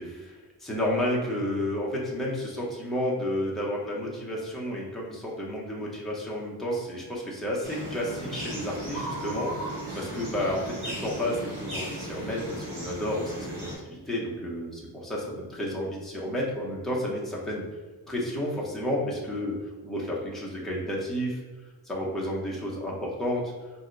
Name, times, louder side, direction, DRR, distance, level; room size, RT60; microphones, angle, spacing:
voice 1, 0.0-17.6 18.1-19.6 19.8-21.4 21.8-23.5, left 1 dB, ahead, -5 dB, 0.7 m, -31 dB
sound 1, 7.6-13.7, right 1 dB, 55° right, 1.3 m, -36 dB
2.7 x 2.3 x 3.8 m, 1.3 s
wide cardioid pair, 115°, 46 cm